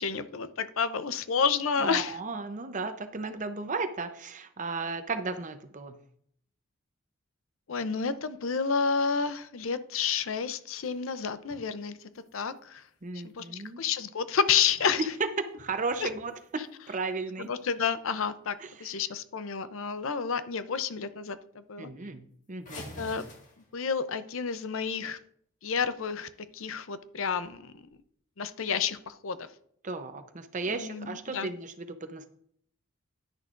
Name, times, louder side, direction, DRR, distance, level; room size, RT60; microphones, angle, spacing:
voice 1, 0.0-2.2 7.7-12.0 12.3-12.8 13.2-15.0 16.0-16.1 17.4-21.9 23.0-23.2 23.7-25.2 25.6-27.8 28.4-29.5 30.6-31.5, left 6 dB, 75° left, 13 dB, 0.6 m, -30 dB
voice 2, 1.8-6.0 13.0-13.8 15.0-15.1 15.5-17.5 18.6-18.7 21.8-23.0 29.8-32.3, right 3 dB, 35° right, 9 dB, 0.7 m, -35 dB
sound 1, 10.6-11.7 12.0-14.0 14.5-15.2 15.5-16.9 17.4-17.5 18.0-18.2 18.6-18.7 19.0-19.5 19.9-20.3 20.7-20.8 21.1-21.2 21.5-21.6 22.6-24.1 27.3-28.0, left 1 dB, 35° left, 1.8 m, -51 dB
11.0 x 10.0 x 2.5 m, 0.65 s
head